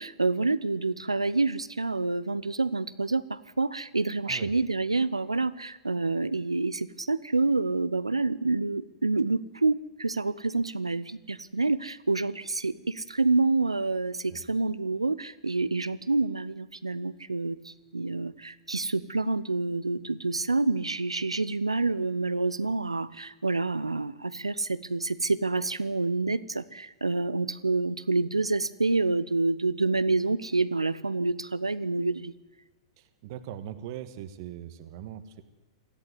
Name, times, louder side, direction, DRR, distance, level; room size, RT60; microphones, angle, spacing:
voice 1, 0.0-32.3, right 3 dB, 85° right, 17 dB, 0.8 m, -28 dB
voice 2, 33.0-35.4, right 11 dB, 50° right, 11 dB, 1.5 m, -40 dB
19.5 x 14.5 x 9.5 m, 1.1 s
figure-of-eight pair, 105°, 3 cm